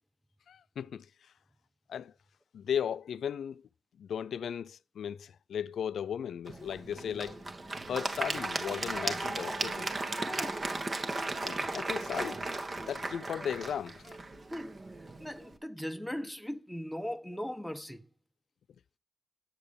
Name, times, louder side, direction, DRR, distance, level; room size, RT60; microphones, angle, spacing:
voice 1, 0.5-1.3 1.9-2.1 2.5-3.7 4.0-7.4 7.9-9.9 11.4-12.4 12.9-14.2, left 8 dB, 80° left, 0.4 m, -36 dB
Applause / Crowd, 6.5-15.5, right 2 dB, 35° right, 1.6 m, -36 dB
voice 2, 10.2-10.6 14.5-14.8 15.2-18.1, equal, ahead, 1.0 m, -39 dB
9.5 x 6.8 x 5.2 m
cardioid pair, 75°, 0 cm